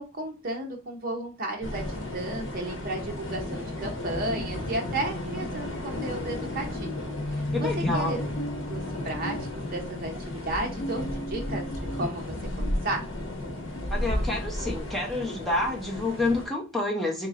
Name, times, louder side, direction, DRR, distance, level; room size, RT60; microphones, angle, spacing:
voice 1, 0.0-7.0 7.3-8.2 8.7-11.6 11.9-12.2 12.6-13.0, right 2 dB, 45° right, 1 dB, 0.8 m, -33 dB
sound 1, 1.6-16.5, left 1 dB, 65° left, 1.0 m, -34 dB
sound 2, 4.5-14.5, left 1 dB, 90° left, 0.5 m, -37 dB
voice 2, 7.5-8.2 13.9-17.3, left 2 dB, ahead, -2 dB, 0.8 m, -29 dB
4.0 x 3.0 x 2.5 m, 0.31 s
head